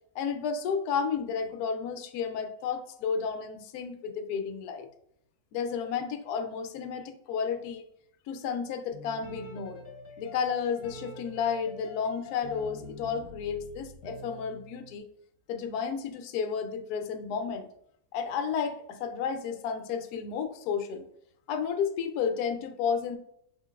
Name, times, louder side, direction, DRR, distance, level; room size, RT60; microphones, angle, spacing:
voice 1, 0.1-4.9 5.5-7.9 8.3-9.8 10.2-15.1 15.5-17.7 18.1-21.0 21.5-23.2, left 6 dB, 80° left, 7 dB, 1.1 m, -32 dB
sound 1, 8.9-15.0, left 2 dB, 55° left, 1.4 m, -46 dB
5.4 x 3.7 x 2.4 m, 0.70 s
omnidirectional pair, 1.7 m